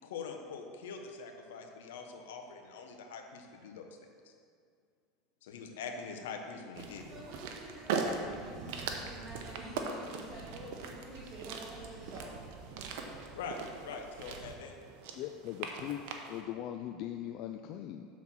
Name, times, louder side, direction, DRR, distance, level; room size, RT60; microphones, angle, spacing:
voice 1, 0.0-3.9 4.2-4.3 5.4-7.2 13.4-14.7, left 5 dB, 85° left, 3 dB, 0.8 m, -43 dB
sound 1, 6.7-16.4, right 5 dB, 70° right, 0.8 m, -40 dB
voice 2, 7.1-12.4, right 1 dB, 35° right, -7 dB, 1.8 m, -48 dB
voice 3, 15.2-18.1, left 11 dB, 55° left, 6 dB, 0.3 m, -40 dB
7.2 x 4.2 x 6.0 m, 2.2 s
supercardioid pair, 115°, 0 cm